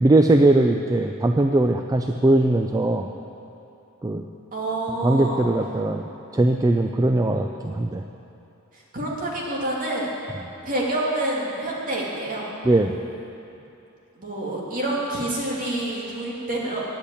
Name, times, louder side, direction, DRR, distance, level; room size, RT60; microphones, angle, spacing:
voice 1, 0.0-3.1 4.0-4.2 5.0-6.0 6.3-8.0 12.6-13.0, right 2 dB, 15° right, 5 dB, 0.3 m, -20 dB
voice 2, 4.5-5.4 8.9-10.1 10.6-12.5 14.2-16.8, right 1 dB, 40° right, -4 dB, 2.4 m, -27 dB
10.0 x 8.4 x 8.4 m, 2.8 s
head